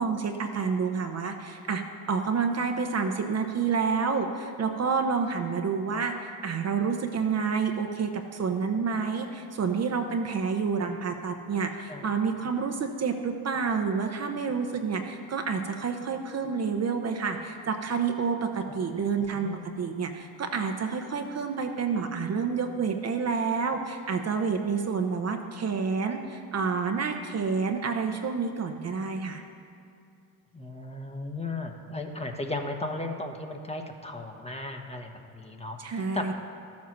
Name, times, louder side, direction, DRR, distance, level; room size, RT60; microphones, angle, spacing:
voice 1, 0.0-29.4 35.8-36.3, right 5 dB, 35° right, 4 dB, 0.9 m, -29 dB
voice 2, 11.8-12.1 19.3-19.7 30.5-36.3, left 2 dB, 15° left, 4 dB, 1.1 m, -36 dB
12.5 x 7.5 x 6.0 m, 2.5 s
cardioid pair, 95°, 43 cm